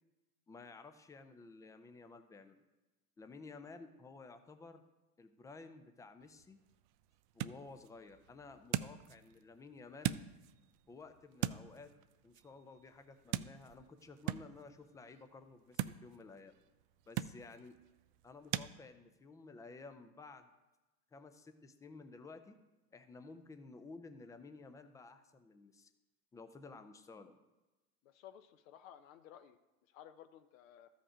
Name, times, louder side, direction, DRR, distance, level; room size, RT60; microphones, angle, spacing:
voice 1, 0.5-2.6 3.2-4.8 5.2-6.6 7.3-10.2 10.9-11.9 12.2-16.6 17.1-17.8 18.2-20.5 21.1-22.6 22.9-25.9 26.3-27.4, left 3 dB, 10° left, 9 dB, 0.4 m, -54 dB
sound 1, 6.2-18.7, right 13 dB, 50° right, 0.4 m, -43 dB
voice 2, 28.0-29.6 29.9-30.9, left 10 dB, 60° left, 8 dB, 0.7 m, -56 dB
13.0 x 5.3 x 4.9 m, 1.1 s
hypercardioid pair, 100°, 47 cm